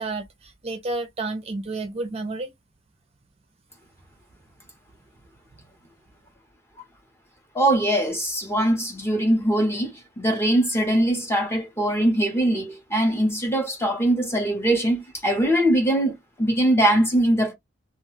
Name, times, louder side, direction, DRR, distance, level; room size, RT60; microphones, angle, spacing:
voice 1, 0.0-2.5, right 2 dB, 30° right, 0.5 m, -31 dB
voice 2, 7.5-17.5, right 1 dB, 10° left, 0.8 m, -22 dB
2.3 x 2.2 x 3.2 m
head